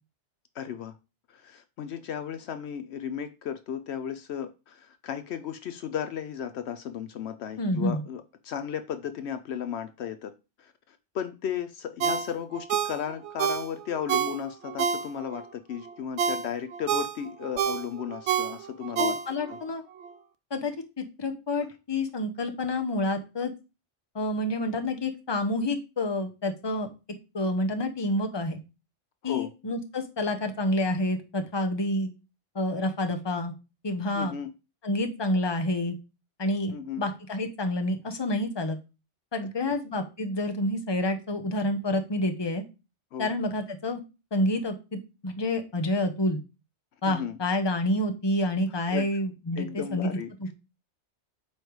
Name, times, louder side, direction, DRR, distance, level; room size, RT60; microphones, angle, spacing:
voice 1, 0.6-0.9 1.3-10.3 10.6-19.1 19.5-19.6 29.2-29.5 34.2-34.5 36.7-37.0 43.1-43.3 47.1-47.4 48.9-49.1 49.6-50.3, left 8 dB, 75° left, 0.9 m, -35 dB
voice 2, 7.6-8.0 19.0-19.8 20.5-23.5 24.1-26.9 27.3-28.6 29.2-32.1 32.5-33.5 33.8-34.3 34.8-35.9 36.4-38.8 39.3-42.6 43.2-44.0 44.3-46.4 47.0-50.1 50.4-50.5, left 1 dB, 25° left, 0.9 m, -28 dB
Ringtone, 12.0-15.4 15.9-19.6 20.0-20.1, right 7 dB, 75° right, 0.9 m, -29 dB
8.4 x 3.3 x 4.7 m
omnidirectional pair, 1.2 m